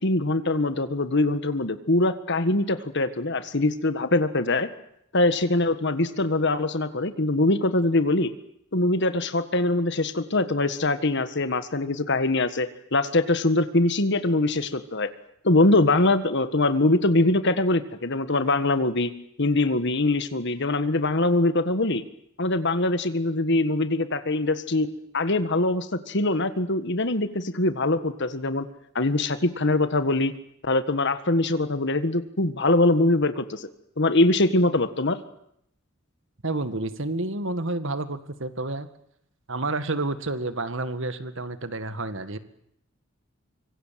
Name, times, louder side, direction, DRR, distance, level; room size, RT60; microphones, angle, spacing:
voice 1, 0.0-4.7 5.1-8.3 8.7-15.1 15.4-19.1 19.4-22.0 22.4-24.9 25.1-28.7 28.9-30.3 30.6-33.7 34.0-35.2, left 2 dB, 60° left, 11 dB, 1.7 m, -23 dB
voice 2, 36.4-38.9 39.5-42.4, right 2 dB, 65° right, 11 dB, 1.9 m, -29 dB
25.5 x 24.5 x 7.6 m, 0.72 s
head